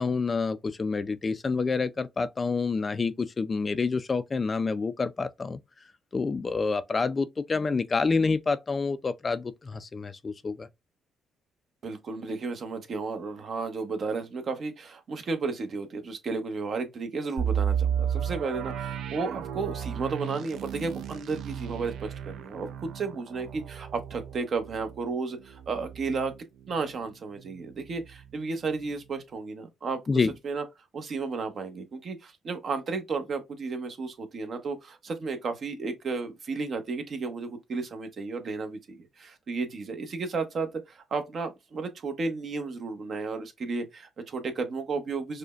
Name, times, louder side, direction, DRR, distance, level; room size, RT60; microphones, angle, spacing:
voice 1, 0.0-5.6 6.1-10.7 30.1-30.3, left 4 dB, 30° left, 0.3 m, -28 dB
voice 2, 11.8-26.3 26.7-30.0 30.4-30.6 30.9-45.4, right 4 dB, 50° right, 0.8 m, -33 dB
sound 1, 17.4-27.1 27.4-27.5 28.0-28.3, right 8 dB, 80° right, 0.4 m, -33 dB
4.9 x 2.1 x 2.3 m
cardioid pair, 90°, 0 cm